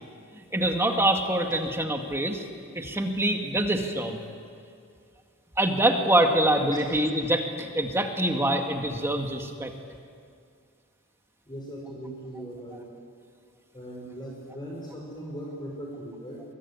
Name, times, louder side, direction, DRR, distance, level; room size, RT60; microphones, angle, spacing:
voice 1, 0.3-2.4 2.7-4.2 5.6-9.7, right 1 dB, 10° right, 3 dB, 2.0 m, -25 dB
voice 2, 11.5-12.9 13.7-16.4, right 1 dB, 20° left, -2 dB, 4.6 m, -39 dB
23.0 x 22.5 x 9.8 m, 2.3 s
head